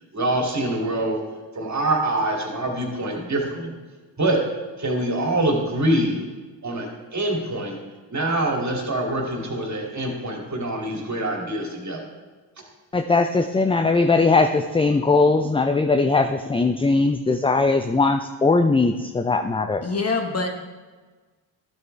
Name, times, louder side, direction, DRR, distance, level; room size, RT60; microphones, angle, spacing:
voice 1, 0.1-1.2 1.5-3.7 4.2-4.4 4.8-6.2 6.6-7.8 8.1-12.0, right 1 dB, 35° right, 0 dB, 2.6 m, -25 dB
voice 2, 12.9-19.8, left 3 dB, 10° left, 7 dB, 0.5 m, -20 dB
voice 3, 19.8-20.5, left 3 dB, 30° left, 4 dB, 1.5 m, -24 dB
12.5 x 7.8 x 3.3 m, 1.3 s
hypercardioid pair, 45°, 47 cm